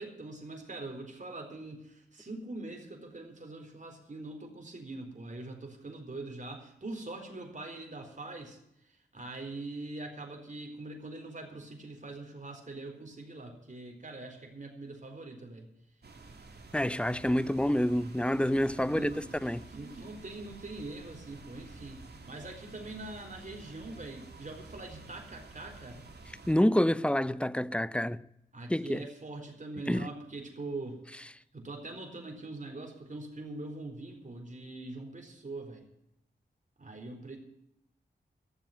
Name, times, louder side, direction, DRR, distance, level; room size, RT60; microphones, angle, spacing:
voice 1, 0.0-8.6 8.8-15.7 18.8-19.4 19.7-26.1 28.5-31.0 31.5-35.9 36.8-37.4, right 2 dB, 40° right, 4.2 m, -43 dB
sound 1, 16.0-26.5, right 3 dB, 60° right, 2.5 m, -50 dB
voice 2, 16.7-19.1 19.4-19.6 26.5-28.2 28.7-29.0 29.9-30.0, left 1 dB, 5° left, 0.7 m, -27 dB
14.0 x 7.5 x 9.3 m
cardioid pair, 45°, 19 cm